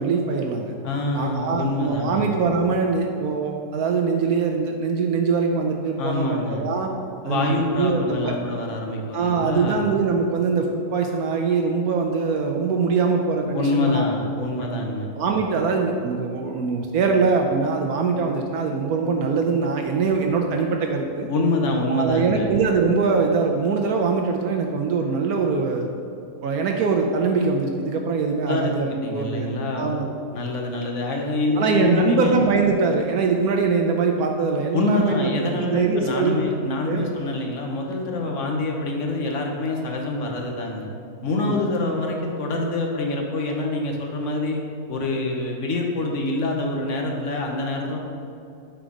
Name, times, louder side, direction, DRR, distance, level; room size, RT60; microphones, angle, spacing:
voice 1, 0.0-0.7 1.1-6.9 7.2-8.3 9.1-14.0 14.3-14.7 15.2-21.3 21.9-25.9 26.4-29.5 29.7-30.2 31.6-35.3 35.6-36.3 36.8-37.1 41.4-41.7, right 4 dB, 75° right, 2 dB, 1.0 m, -23 dB
voice 2, 0.8-2.3 6.0-6.6 7.2-9.9 13.5-15.1 21.3-22.5 28.5-30.0 30.3-32.4 34.7-40.9 41.2-44.6 44.9-48.0, left 2 dB, 55° left, 1 dB, 1.2 m, -25 dB
7.7 x 4.7 x 5.1 m, 2.6 s
omnidirectional pair, 1.7 m